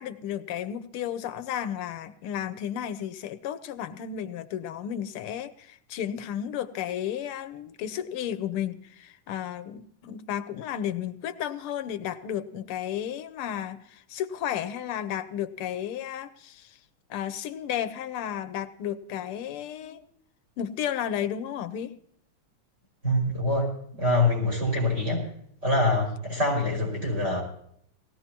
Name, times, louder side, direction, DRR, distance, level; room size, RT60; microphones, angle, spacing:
voice 1, 0.0-16.8 17.1-20.0 20.6-21.9, left 10 dB, 85° left, 13 dB, 1.6 m, -33 dB
voice 2, 23.0-23.7 24.0-25.3 25.6-27.4, left 2 dB, 30° right, -2 dB, 5.7 m, -25 dB
19.5 x 15.5 x 2.9 m, 0.66 s
omnidirectional pair, 2.4 m